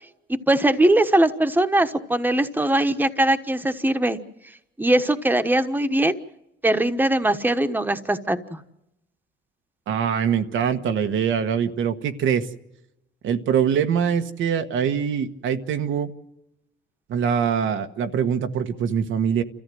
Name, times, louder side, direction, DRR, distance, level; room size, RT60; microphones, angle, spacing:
voice 1, 0.3-4.2 4.8-6.1 6.6-8.6, right 1 dB, 10° right, 8 dB, 1.3 m, -21 dB
voice 2, 9.9-12.5 13.2-16.1 17.1-19.4, right 7 dB, 75° right, 7 dB, 1.4 m, -23 dB
28.5 x 14.0 x 7.8 m, 0.87 s
cardioid pair, 90°, 20 cm